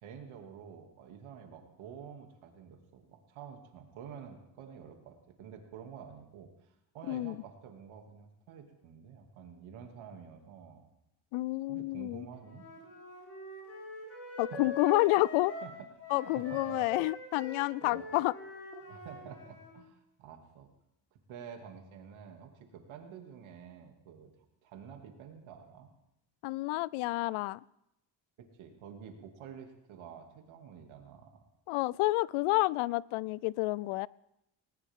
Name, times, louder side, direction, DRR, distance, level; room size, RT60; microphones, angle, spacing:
voice 1, 0.0-10.9 11.7-12.7 14.4-14.8 15.6-16.8 17.8-18.0 18.8-20.7 21.3-24.3 24.6-25.9 28.4-31.3, right 7 dB, 70° right, 3 dB, 2.6 m, -49 dB
voice 2, 11.3-12.3 14.4-15.5 16.1-18.3 26.4-27.6 31.7-34.1, left 20 dB, 80° left, 23 dB, 0.6 m, -29 dB
Wind instrument woodwind instrument, 12.4-19.7, equal, 30° left, 6.7 m, -44 dB
20.0 x 19.0 x 3.7 m, 0.84 s
cardioid pair, 155°, 50 cm